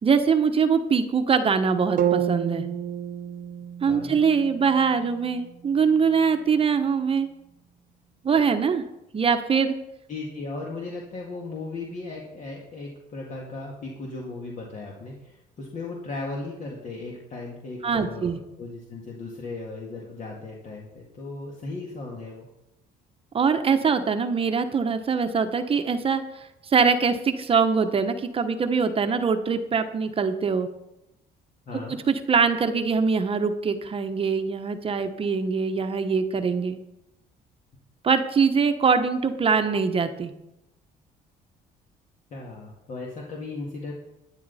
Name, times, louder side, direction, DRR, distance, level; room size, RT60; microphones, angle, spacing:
voice 1, 0.0-2.6 3.8-7.3 8.2-8.8 9.1-9.7 17.8-18.4 23.3-26.2 26.7-30.7 32.1-36.8 38.0-40.3, right 5 dB, 35° right, 7 dB, 0.9 m, -23 dB
sound 1, 2.0-6.0, right 10 dB, 55° right, 0.7 m, -30 dB
voice 2, 10.1-22.4 31.7-32.0 42.3-43.9, left 3 dB, 50° left, -1 dB, 2.1 m, -36 dB
12.0 x 10.0 x 4.2 m, 0.90 s
cardioid pair, 110°, 17 cm